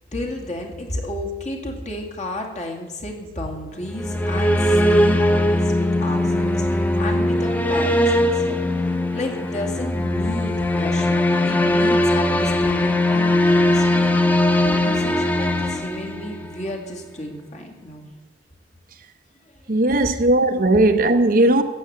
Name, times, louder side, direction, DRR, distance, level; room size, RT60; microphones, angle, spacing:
voice 1, 0.1-8.6 9.1-14.3 14.6-18.1 19.5-19.8, left 1 dB, 40° left, 2.3 m, -32 dB
sound 1, 3.8-16.7, left 1 dB, 10° left, 0.8 m, -20 dB
voice 2, 19.7-21.6, right 1 dB, 55° right, 0.9 m, -17 dB
14.0 x 8.6 x 7.7 m
head